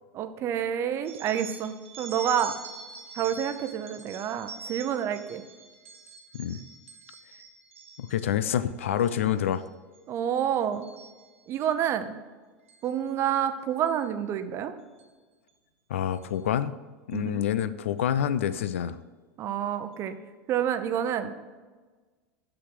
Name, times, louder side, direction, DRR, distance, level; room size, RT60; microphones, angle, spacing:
voice 1, 0.1-2.5 3.1-5.4 10.1-10.9 11.5-12.2 12.8-14.7 17.1-17.5 19.4-20.2 20.5-21.3, right 9 dB, 40° right, 10 dB, 0.7 m, -28 dB
sound 1, 1.1-8.4 8.8-9.2 9.5-10.0 10.4-11.7 12.7-12.9 13.9-14.0 15.0-15.1 15.5-15.6 16.1-16.4, right 5 dB, 85° right, 1.1 m, -45 dB
voice 2, 8.0-9.6 15.9-16.7 17.1-19.0, left 10 dB, 75° left, 14 dB, 0.4 m, -27 dB
6.2 x 6.0 x 6.2 m, 1.4 s
hypercardioid pair, 90°, 7 cm